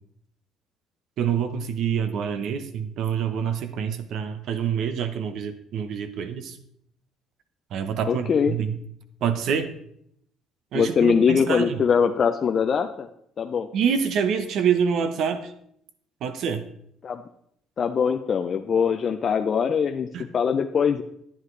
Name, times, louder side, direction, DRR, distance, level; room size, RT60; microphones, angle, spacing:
voice 1, 1.2-6.6 7.7-8.8 9.2-9.7 10.7-11.8 13.7-15.5 16.2-16.6 20.1-20.2, right 7 dB, 65° right, 9 dB, 0.9 m, -26 dB
voice 2, 8.1-8.6 10.7-13.1 13.4-13.7 17.0-17.2 17.8-20.1 20.3-21.0, left 6 dB, 40° left, 6 dB, 0.5 m, -22 dB
10.5 x 9.5 x 3.2 m, 0.71 s
cardioid pair, 105°, 0 cm